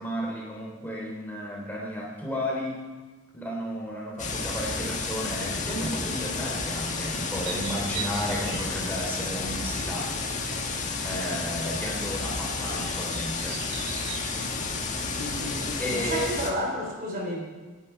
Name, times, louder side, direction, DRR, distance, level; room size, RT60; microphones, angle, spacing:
voice 1, 0.0-2.8 3.3-10.2 11.0-13.6 15.8-16.4, equal, 10° left, -3 dB, 3.4 m, -33 dB
sound 1, 4.2-16.5, left 3 dB, 35° left, 1.8 m, -31 dB
sound 2, 7.3-16.4, right 5 dB, 80° right, 3.2 m, -43 dB
voice 2, 15.1-17.4, equal, 40° right, 0 dB, 3.4 m, -31 dB
28.5 x 10.5 x 4.5 m, 1.4 s
head